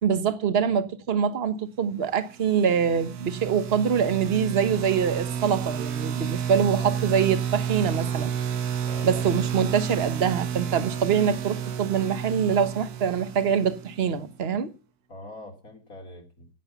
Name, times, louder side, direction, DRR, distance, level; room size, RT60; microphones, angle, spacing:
voice 1, 0.0-8.3 9.0-14.7, right 7 dB, 45° right, 1.4 m, -24 dB
sound 1, 2.4-14.2, right 8 dB, 80° right, 1.5 m, -31 dB
voice 2, 6.7-7.2 8.8-9.2 15.1-16.5, left 1 dB, 65° left, 3.2 m, -43 dB
17.5 x 7.9 x 7.0 m
omnidirectional pair, 1.6 m